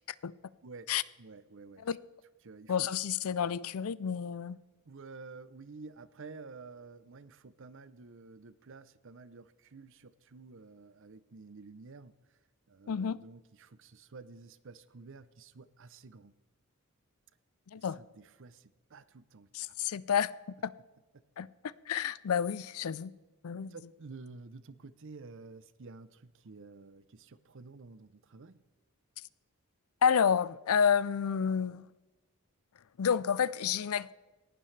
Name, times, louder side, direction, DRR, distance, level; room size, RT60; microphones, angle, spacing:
voice 1, 1.2-1.9 2.4-2.9 4.8-12.4 12.7-16.3 17.7-19.8 21.1-21.2 23.7-28.6, right 4 dB, 55° right, 0.6 m, -51 dB
voice 2, 2.7-4.6 12.9-13.2 17.7-18.0 19.5-20.3 20.6-20.7 21.4-23.1 23.4-23.7 30.0-31.9 33.0-34.1, left 7 dB, 70° left, 0.4 m, -30 dB
18.0 x 12.0 x 3.3 m
head